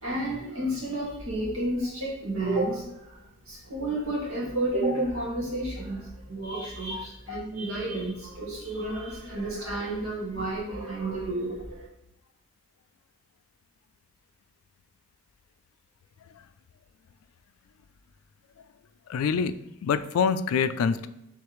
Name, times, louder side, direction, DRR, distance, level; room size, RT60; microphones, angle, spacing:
voice 1, 0.0-3.2 3.5-11.9, right 1 dB, 75° right, -5 dB, 1.6 m, -31 dB
voice 2, 6.9-7.4 19.1-19.5 19.8-21.1, left 6 dB, 80° left, 13 dB, 0.3 m, -27 dB
4.9 x 3.4 x 3.1 m, 0.88 s
head